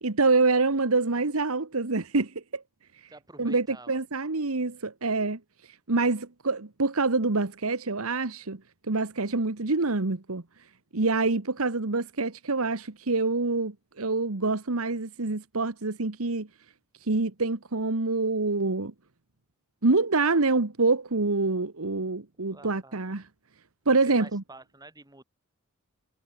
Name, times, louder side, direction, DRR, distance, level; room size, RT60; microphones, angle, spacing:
voice 1, 0.0-2.6 3.4-5.4 5.9-8.6 8.9-10.4 10.9-16.5 17.1-18.9 19.8-23.2 23.9-24.4, right 3 dB, 75° right, 1.4 m, -26 dB
voice 2, 3.0-4.0 22.5-23.0 24.1-25.2, right 2 dB, 20° right, 7.8 m, -49 dB
head